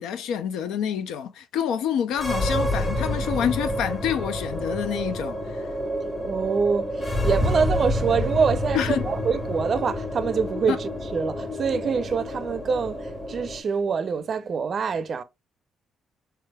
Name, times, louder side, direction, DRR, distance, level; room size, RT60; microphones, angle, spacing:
voice 1, 0.0-5.6 8.7-9.1 10.7-10.8, left 9 dB, 85° left, 0.5 m, -27 dB
sound 1, 2.1-13.6, left 1 dB, 20° left, 1.6 m, -28 dB
voice 2, 6.3-15.2, right 6 dB, 50° right, 0.5 m, -25 dB
4.6 x 3.3 x 2.2 m
cardioid pair, 90°, 0 cm